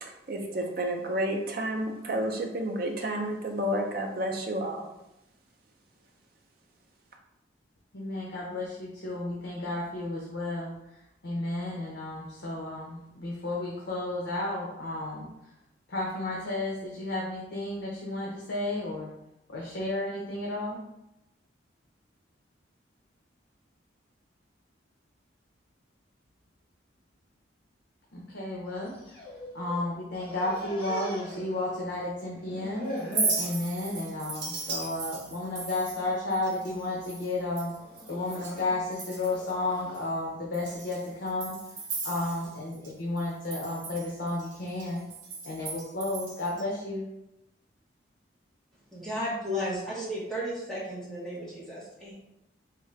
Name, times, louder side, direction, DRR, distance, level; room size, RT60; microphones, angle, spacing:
voice 1, 0.3-4.9, right 1 dB, 50° right, 2 dB, 0.5 m, -30 dB
voice 2, 7.9-15.5 15.9-19.1 19.5-20.8 28.1-32.9 33.4-41.6 42.0-45.0 45.4-47.0, left 2 dB, 70° left, -3 dB, 0.6 m, -33 dB
sound 1, 28.8-29.8 30.1-32.0 32.3-33.4 33.9-34.3 34.6-34.8 35.6-36.0 36.5-36.9 37.8-40.0, left 1 dB, 25° left, 1.2 m, -41 dB
Chink clink, 33.0-38.6 38.9-39.5 39.9-40.0 40.5-42.9 43.2-46.6, right 4 dB, 80° right, 0.8 m, -36 dB
voice 3, 48.9-52.1, equal, ahead, -7 dB, 1.0 m, -34 dB
3.6 x 2.5 x 3.2 m, 0.88 s
head